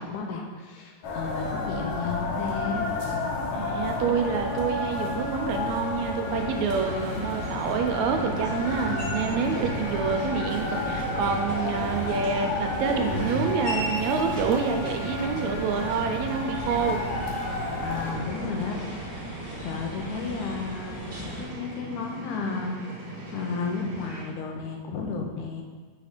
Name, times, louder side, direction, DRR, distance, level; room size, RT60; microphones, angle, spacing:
voice 1, 0.0-2.9 17.8-18.8 19.6-22.8 23.1-25.6, left 4 dB, 85° left, 1 dB, 2.2 m, -33 dB
sound 1, 1.0-18.1, left 2 dB, 70° left, 1.6 m, -31 dB
voice 2, 3.5-17.0, right 6 dB, 80° right, 4 dB, 1.8 m, -27 dB
sound 2, 4.1-21.4, equal, 50° left, 2.1 m, -41 dB
sound 3, 6.2-24.2, right 2 dB, 55° right, 1.0 m, -38 dB
4.8 x 4.1 x 5.0 m, 1.4 s
omnidirectional pair, 3.3 m